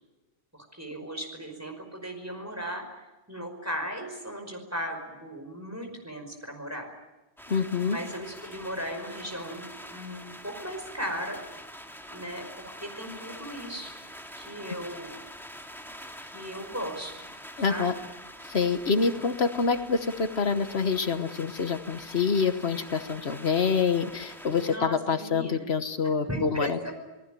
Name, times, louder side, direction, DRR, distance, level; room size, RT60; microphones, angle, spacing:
voice 1, 0.5-2.8 3.3-6.9 7.8-11.4 12.1-14.0 14.4-15.1 16.2-17.3 17.6-17.9 18.5-18.6 24.5-25.7 26.3-26.9, equal, 15° right, 4 dB, 5.4 m, -37 dB
sound 1, 7.4-24.8, equal, ahead, 2.2 m, -45 dB
voice 2, 7.5-8.0 17.6-17.9 18.5-26.9, left 5 dB, 75° left, 9 dB, 1.4 m, -26 dB
28.0 x 18.5 x 9.0 m, 1.1 s
omnidirectional pair, 1.1 m